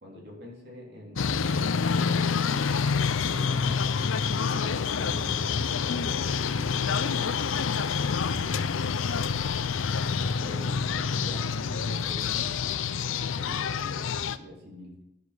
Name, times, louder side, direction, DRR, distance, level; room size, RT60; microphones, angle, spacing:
voice 1, 0.0-4.0 4.4-7.5 8.2-9.1 10.2-15.0, left 1 dB, 55° right, -2 dB, 3.5 m, -45 dB
sound 1, 1.2-14.4, left 5 dB, 85° left, 0.6 m, -27 dB
11.0 x 7.4 x 6.3 m, 0.85 s
head